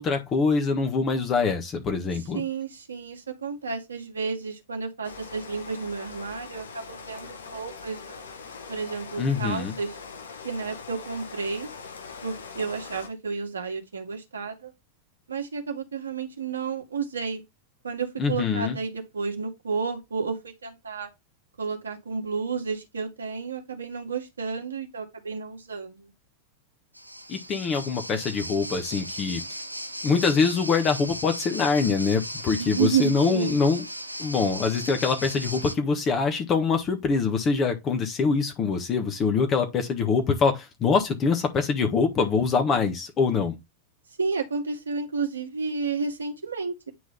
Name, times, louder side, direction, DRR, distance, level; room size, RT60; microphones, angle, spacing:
voice 1, 0.0-2.4 9.2-9.7 18.2-18.8 27.3-29.4 30.0-33.8 34.2-43.6, left 5 dB, 30° left, 1.5 m, -24 dB
voice 2, 2.1-8.3 8.7-10.0 10.4-11.7 12.2-14.7 15.3-17.4 17.8-21.1 21.6-26.1 32.6-33.6 44.2-46.9, right 5 dB, 70° right, 2.0 m, -31 dB
Rain, 5.0-13.1, left 5 dB, 65° left, 1.2 m, -42 dB
sound 1, 26.9-35.7, equal, 90° right, 0.7 m, -37 dB
9.4 x 3.9 x 3.5 m
figure-of-eight pair, 90°, 0 cm